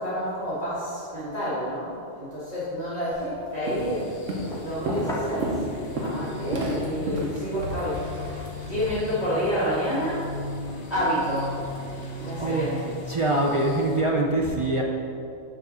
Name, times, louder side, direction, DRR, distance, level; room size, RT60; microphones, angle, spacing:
voice 1, 0.0-4.1 4.6-5.6 6.0-10.2 10.9-11.5 12.2-12.7, equal, 35° left, -11 dB, 1.9 m, -29 dB
Walk footsteps, 3.1-3.3 3.7-4.0 4.3-8.9, right 1 dB, 85° right, 1.3 m, -31 dB
sound 1, 3.6-14.0, left 3 dB, 75° left, 1.5 m, -38 dB
sound 2, 4.4-6.3 6.8-11.4, equal, 5° left, 0.9 m, -40 dB
voice 2, 12.4-14.8, right 2 dB, 55° right, -1 dB, 0.3 m, -24 dB
7.4 x 3.8 x 6.1 m, 2.6 s
omnidirectional pair, 1.3 m